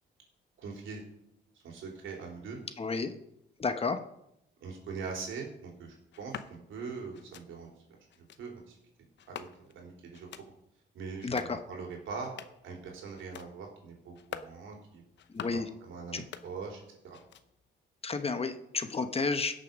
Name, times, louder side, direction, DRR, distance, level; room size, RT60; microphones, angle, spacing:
voice 1, 0.6-1.0 1.6-2.6 4.6-7.7 8.4-8.6 9.3-10.3 10.9-12.3 12.6-15.0 15.5-17.2, right 5 dB, 75° right, 0 dB, 3.4 m, -42 dB
voice 2, 2.8-3.1 3.6-4.0 11.2-11.6 15.3-15.7 16.1-16.2 18.0-19.5, left 4 dB, 30° left, 8 dB, 1.0 m, -31 dB
sound 1, 6.1-6.5 7.1-7.5 8.1-8.4 9.2-9.8 10.1-10.5 11.1-11.6 12.1-12.7 13.1-13.5 14.1-14.6 15.1-15.7 16.1-16.8 17.1-17.7, left 9 dB, 65° left, 0.8 m, -46 dB
16.5 x 6.7 x 5.3 m, 0.81 s
cardioid pair, 90°, 20 cm